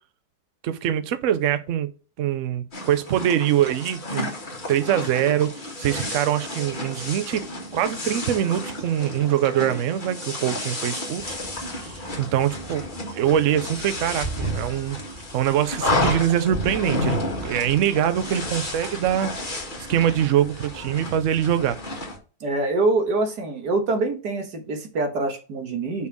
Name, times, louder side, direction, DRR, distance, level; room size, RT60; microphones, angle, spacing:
voice 1, 0.6-1.9 2.2-4.3 4.7-11.4 11.7-12.9 13.1-19.3 19.9-21.8, right 10 dB, 60° right, 0.9 m, -23 dB
sound 1, 2.7-22.2, left 1 dB, 30° left, 1.9 m, -31 dB
voice 2, 22.4-26.1, right 2 dB, 85° right, 2.0 m, -25 dB
5.6 x 4.5 x 6.3 m
omnidirectional pair, 1.7 m